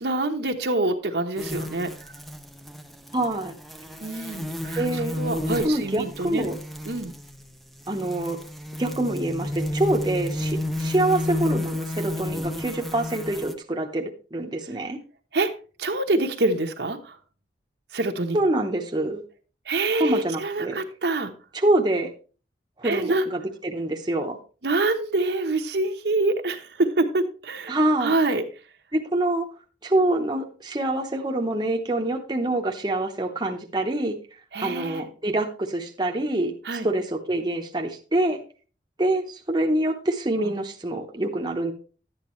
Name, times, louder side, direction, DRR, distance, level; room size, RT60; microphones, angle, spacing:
voice 1, 0.0-1.9 4.0-6.5 6.9-7.1 15.3-15.5 15.8-17.2 17.9-18.4 19.7-21.3 22.8-23.3 24.6-28.4 34.5-35.0 36.6-36.9 40.4-40.5, right 2 dB, 70° right, 5 dB, 1.0 m, -26 dB
sound 1, 1.4-13.5, left 1 dB, ahead, 0.6 m, -32 dB
voice 2, 3.1-3.5 4.8-5.2 5.6-6.6 7.9-8.4 8.8-15.0 18.3-19.2 20.0-20.8 21.5-22.1 22.8-24.4 27.7-28.1 28.9-29.5 29.8-34.1 34.6-36.5 36.8-38.4 39.0-41.7, right 1 dB, 25° right, 1 dB, 0.9 m, -25 dB
11.5 x 8.8 x 3.1 m, 0.36 s
head